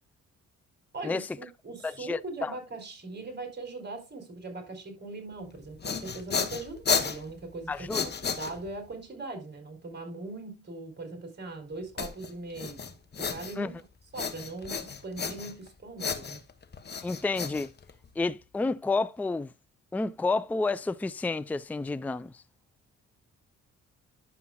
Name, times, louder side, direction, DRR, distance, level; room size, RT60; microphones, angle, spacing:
voice 1, 0.9-8.1 8.4-13.8 14.1-16.4, right 2 dB, 35° right, 4.0 m, -40 dB
voice 2, 1.8-2.5 7.7-8.0 13.6-13.7 17.0-17.7 18.2-19.5 19.9-22.4, left 3 dB, 5° left, 0.4 m, -30 dB
sound 1, 5.5-8.9 12.0-13.8 14.1-15.7 16.0-18.2, left 6 dB, 35° left, 1.1 m, -33 dB
11.0 x 7.1 x 2.3 m
cardioid pair, 90°, 30 cm